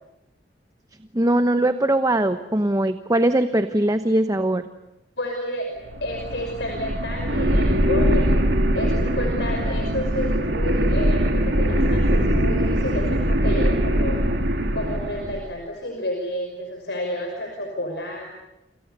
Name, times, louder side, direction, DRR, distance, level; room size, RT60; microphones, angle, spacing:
voice 1, 1.1-4.6, right 1 dB, 20° right, 9 dB, 1.0 m, -21 dB
voice 2, 5.2-8.4 8.7-14.2 14.7-18.4, left 1 dB, 70° left, 2 dB, 5.8 m, -30 dB
sound 1, 5.8-15.4, equal, 80° right, 3.5 m, -22 dB
30.0 x 27.5 x 6.8 m, 0.91 s
head